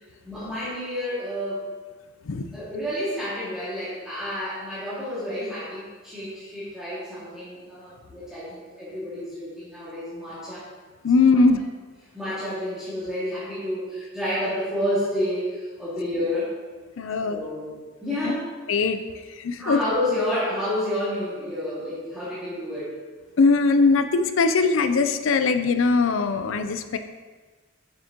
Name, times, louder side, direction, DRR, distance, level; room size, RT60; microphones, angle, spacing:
voice 1, 0.2-1.6 2.5-10.6 11.1-11.4 12.1-16.5 17.2-18.5 19.6-22.9, left 1 dB, 5° right, -13 dB, 2.0 m, -30 dB
voice 2, 11.0-11.6 17.0-17.4 18.2-18.4 18.7-19.0 19.4-19.8 23.4-27.0, left 4 dB, 65° left, 9 dB, 0.4 m, -20 dB
6.9 x 6.4 x 2.9 m, 1.4 s
head